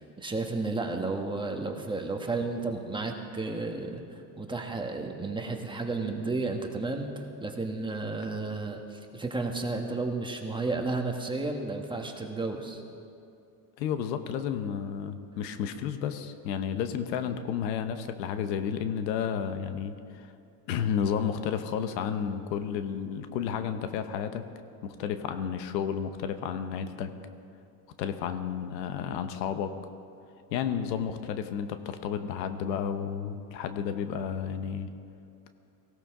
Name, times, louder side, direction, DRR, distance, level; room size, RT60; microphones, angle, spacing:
voice 1, 0.2-12.8, right 3 dB, 10° right, 3 dB, 1.5 m, -32 dB
voice 2, 13.8-20.3 20.7-24.4 24.8-27.1 28.0-29.7 30.5-34.9, left 8 dB, 85° left, 9 dB, 1.1 m, -32 dB
18.0 x 16.5 x 3.8 m, 2.5 s
supercardioid pair, 100°, 49 cm